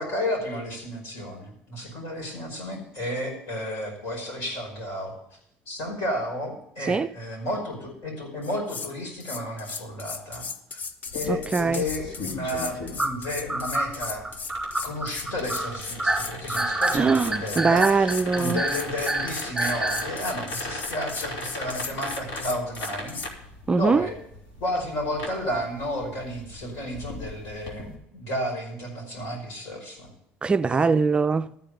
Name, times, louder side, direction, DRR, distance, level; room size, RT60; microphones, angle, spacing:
voice 1, 0.0-5.1 5.7-10.5 10.7-10.8 11.1-14.3 14.8-17.9 18.3-23.2 23.8-24.1 24.6-30.1 30.7-31.0, left 1 dB, 70° left, 5.4 m, -32 dB
sound 1, 8.4-8.9 9.2-23.3, left 5 dB, 40° left, 0.8 m, -37 dB
sound 2, 11.1-27.9, left 1 dB, 85° left, 3.2 m, -39 dB
voice 2, 11.3-11.9 16.9-18.6 23.7-24.1 30.4-31.5, right 4 dB, 25° right, 0.4 m, -22 dB
sound 3, 13.0-20.1, right 2 dB, 5° right, 2.0 m, -27 dB
13.5 x 5.1 x 9.1 m
supercardioid pair, 95°, 4 cm